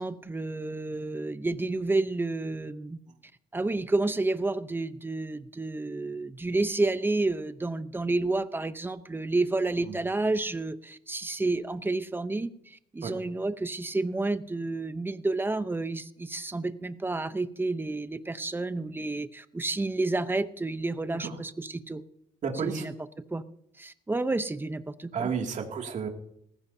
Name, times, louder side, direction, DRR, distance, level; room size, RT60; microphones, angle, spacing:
voice 1, 0.0-3.0 3.5-22.0 22.6-22.9 23.3-23.4 23.8-25.3, right 2 dB, 10° right, 12 dB, 0.8 m, -30 dB
voice 2, 22.4-22.9 25.1-26.1, right 6 dB, 45° right, 2 dB, 2.6 m, -31 dB
19.5 x 15.5 x 2.8 m, 0.72 s
cardioid pair, 110°, 17 cm